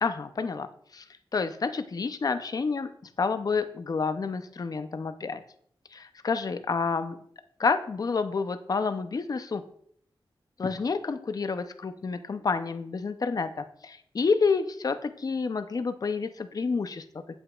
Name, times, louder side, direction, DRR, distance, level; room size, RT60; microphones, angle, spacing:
voice 1, 0.0-0.7 0.9-1.0 1.3-2.9 3.2-5.4 5.9-7.2 7.6-9.6 10.6-17.0, left 4 dB, 45° left, 10 dB, 0.5 m, -29 dB
7.9 x 7.9 x 2.3 m, 0.64 s
wide cardioid pair, 105°, 9 cm